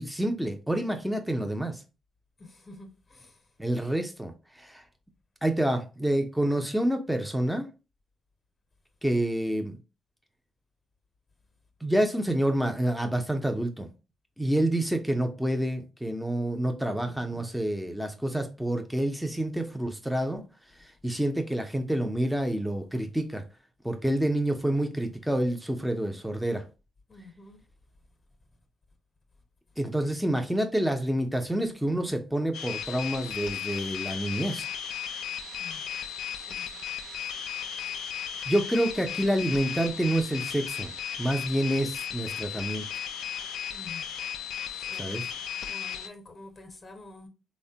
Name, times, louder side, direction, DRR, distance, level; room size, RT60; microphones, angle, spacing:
voice 1, 0.0-1.8 3.6-4.3 4.6-4.8 5.4-7.7 9.0-9.8 11.8-13.9 14.4-20.4 21.0-23.4 23.8-26.6 29.8-34.7 38.5-40.9 41.2-42.8 45.0-45.2, right 1 dB, ahead, 0.5 m, -28 dB
voice 2, 2.4-3.5 27.1-27.6 35.5-35.9 36.3-36.7 43.7-44.1 44.7-45.1 45.7-47.3, left 2 dB, 35° left, 0.6 m, -48 dB
sound 1, 32.5-46.1, left 9 dB, 80° left, 0.3 m, -35 dB
3.1 x 2.1 x 2.7 m
supercardioid pair, 60°, 0 cm